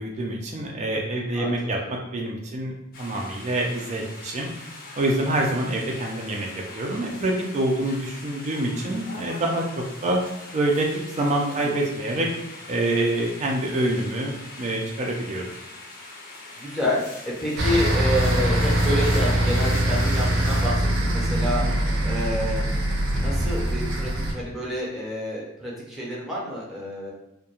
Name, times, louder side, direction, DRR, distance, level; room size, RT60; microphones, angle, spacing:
voice 1, 0.0-4.5 5.0-10.2 10.5-10.9 11.2-12.3 12.7-15.5 21.6-21.7, right 1 dB, 35° right, -1 dB, 0.3 m, -26 dB
sound 1, 2.9-20.7, left 2 dB, 45° left, 0.5 m, -42 dB
voice 2, 11.4-11.7 16.6-21.6 22.0-22.6 23.1-27.1, equal, ahead, -5 dB, 0.7 m, -29 dB
sound 2, 17.6-24.3, right 1 dB, 85° right, 0.6 m, -23 dB
2.3 x 2.1 x 2.8 m, 0.86 s
head